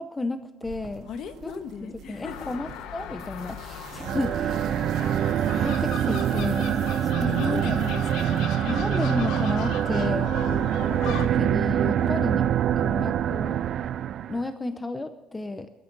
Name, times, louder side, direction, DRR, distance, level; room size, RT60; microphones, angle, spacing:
voice 1, 0.0-1.1 1.4-1.5 1.8-4.7 5.5-6.8 7.0-7.8 8.7-10.3 10.7-12.4 12.8-13.6 14.3-15.7, left 2 dB, 10° left, 9 dB, 0.6 m, -32 dB
sound 1, 0.6-10.0, right 7 dB, 55° right, 2.1 m, -45 dB
voice 2, 1.0-2.5 7.3-8.8 10.1-10.4 11.9-12.3, left 7 dB, 50° left, 9 dB, 1.3 m, -38 dB
Gull seagull, 2.2-11.3, left 9 dB, 75° left, 1.3 m, -38 dB
sound 2, 4.0-14.4, right 10 dB, 40° right, 0.4 m, -25 dB
21.0 x 13.5 x 4.0 m, 1.1 s
cardioid pair, 170°, 0 cm